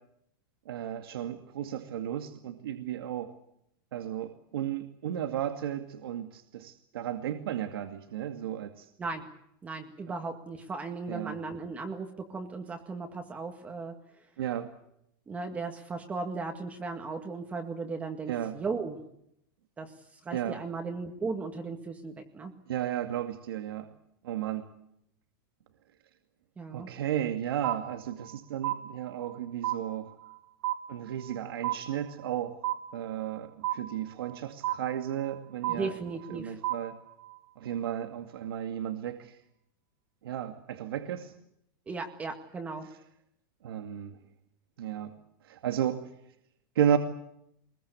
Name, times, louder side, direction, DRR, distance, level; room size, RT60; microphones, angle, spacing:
voice 1, 0.7-3.3 3.9-8.9 10.1-10.2 11.1-11.4 14.4-14.7 18.3-18.6 20.3-20.6 22.7-23.9 24.2-24.7 26.7-30.1 30.9-32.6 32.9-36.0 36.3-37.0 37.6-39.4 40.2-41.3 43.6-44.2 44.8-45.1 45.4-46.0 46.8-47.0, right 10 dB, 90° right, 6 dB, 2.3 m, -33 dB
voice 2, 9.6-13.9 15.3-19.0 19.8-22.5 26.6-26.9 35.7-36.6 41.9-42.9, right 4 dB, 10° right, 4 dB, 1.9 m, -36 dB
sound 1, 27.6-28.3 28.6-29.4 29.6-30.4 30.6-31.4 31.6-32.4 32.6-33.4 33.6-34.4 34.6-35.4 35.6-36.4 36.6-37.4, right 14 dB, 55° right, 1.3 m, -33 dB
23.5 x 21.5 x 8.4 m, 0.76 s
supercardioid pair, 170°, 12 cm